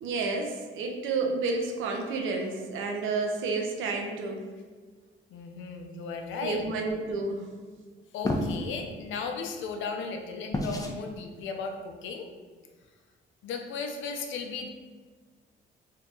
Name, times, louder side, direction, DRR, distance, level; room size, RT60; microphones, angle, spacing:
voice 1, 0.0-4.4 6.4-7.5, right 3 dB, 85° right, 2 dB, 0.6 m, -30 dB
voice 2, 5.3-6.7 8.1-12.3 13.4-14.7, left 5 dB, 75° left, 4 dB, 0.5 m, -36 dB
sound 1, 8.2-8.7 10.5-11.0, left 1 dB, 20° left, 0.4 m, -29 dB
2.7 x 2.3 x 3.7 m, 1.5 s
cardioid pair, 90°, 20 cm